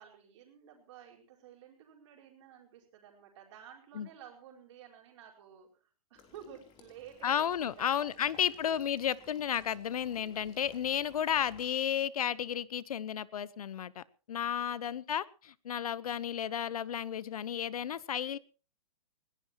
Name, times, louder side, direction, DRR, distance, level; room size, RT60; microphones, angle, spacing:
voice 1, 0.0-8.8 9.1-9.2 14.6-15.0, right 9 dB, 50° right, 4.9 m, -53 dB
Water / Liquid, 6.1-11.6, left 6 dB, 25° left, 3.5 m, -58 dB
voice 2, 7.2-18.4, left 9 dB, 70° left, 1.0 m, -33 dB
20.5 x 17.5 x 3.0 m
hypercardioid pair, 140°, 19 cm